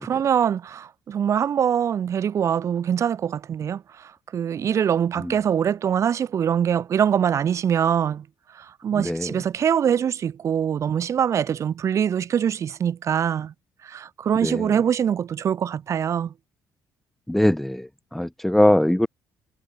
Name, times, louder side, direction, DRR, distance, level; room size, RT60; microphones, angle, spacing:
voice 1, 0.0-8.3 8.5-13.5 13.8-16.3, right 8 dB, 45° right, 3.8 m, -23 dB
voice 2, 9.0-9.3 14.4-14.7 17.3-19.1, left 1 dB, 5° left, 0.5 m, -21 dB
cardioid pair, 150°, 7 cm